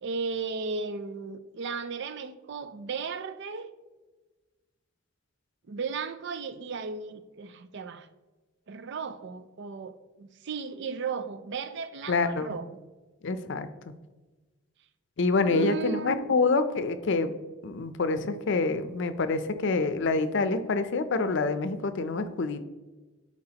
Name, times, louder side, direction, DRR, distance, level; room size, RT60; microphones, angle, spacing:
voice 1, 0.0-3.7 5.7-8.1 8.7-12.8 15.5-16.4, right 5 dB, 60° right, 11 dB, 0.5 m, -35 dB
voice 2, 12.1-12.6 13.2-13.7 15.2-17.3 17.6-22.6, left 3 dB, 65° left, 11 dB, 0.5 m, -26 dB
11.5 x 4.5 x 2.9 m, 1.2 s
head